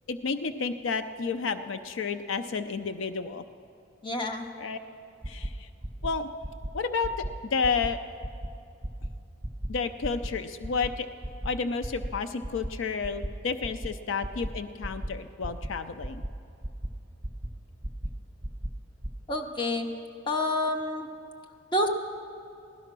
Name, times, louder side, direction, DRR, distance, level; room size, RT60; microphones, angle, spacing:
voice 1, 0.1-3.4 4.6-4.8 5.3-5.7 6.0-6.3 6.7-7.2 7.5-8.0 9.7-11.1 11.4-16.2, left 5 dB, 70° left, 10 dB, 0.5 m, -31 dB
voice 2, 4.0-4.5 19.3-19.9 20.3-21.1 21.7-21.9, left 1 dB, 25° left, 4 dB, 0.9 m, -28 dB
sound 1, 5.2-5.5 5.8-6.1 6.4-6.7 7.0-7.3 7.6-7.9 8.2-8.5 8.8-9.1 9.4-9.7 10.0-10.3 10.6-10.9 11.2-11.5 11.8-12.1 12.4-12.7 13.0-13.3 13.6-13.9 14.2-14.5 14.8-15.1 15.4-15.7 16.0-16.3 16.6-16.9 17.2-17.5 17.8-18.1 18.4-18.7 19.0-19.1, right 1 dB, 15° right, 1.0 m, -34 dB
16.0 x 12.0 x 6.0 m, 2.5 s
head